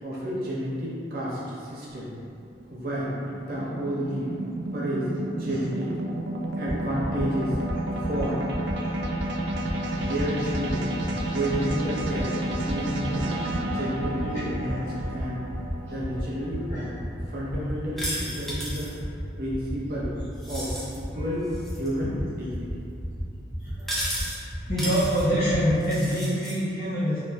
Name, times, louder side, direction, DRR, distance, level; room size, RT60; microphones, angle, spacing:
voice 1, 0.0-2.1 2.7-3.1 3.4-4.4 4.7-5.1 5.4-5.9 6.5-7.6 7.9-8.4 9.9-10.9 11.3-13.3 13.6-15.4 15.9-17.0 17.3-18.9 19.4-20.1 20.5-21.5 21.7-22.8, equal, 55° right, -8 dB, 0.8 m, -31 dB
sound 1, 1.9-18.3, right 1 dB, 75° right, 0.3 m, -32 dB
sound 2, 6.6-6.7 7.0-7.2 7.5-7.7 8.0-8.2 8.5-8.7 9.0-9.2 9.5-9.7 10.0-10.2 10.5-10.7 11.0-11.2 11.5-11.7 12.0-12.2 12.5-12.7 13.0-13.2 13.5-13.7 14.0-14.2 14.5-14.7 15.0-15.2 15.5-15.7 16.0-16.2 16.5-16.7 17.0-17.2 17.5-17.7 18.0-18.2 18.5-18.7 19.0-19.2 19.5-19.7 20.0-20.2 20.5-20.7 21.0-21.2 21.5-21.7 22.0-22.2 22.5-22.7 23.0-23.2 23.5-23.7 24.0-24.2 24.5-24.7 25.0-25.2 25.5-25.7, equal, 80° left, 1.3 m, -35 dB
voice 2, 9.6-10.1 13.7-13.8 14.3-14.4 16.7-16.8 21.1-21.3 23.6-24.0 24.7-27.2, equal, 40° left, -12 dB, 0.7 m, -27 dB
sound 3, 18.0-19.0 20.4-21.0 21.5-21.9 23.8-24.4 24.8-25.2 25.8-26.6, equal, ahead, 0.4 m, -33 dB
4.0 x 2.9 x 2.2 m, 2.6 s
head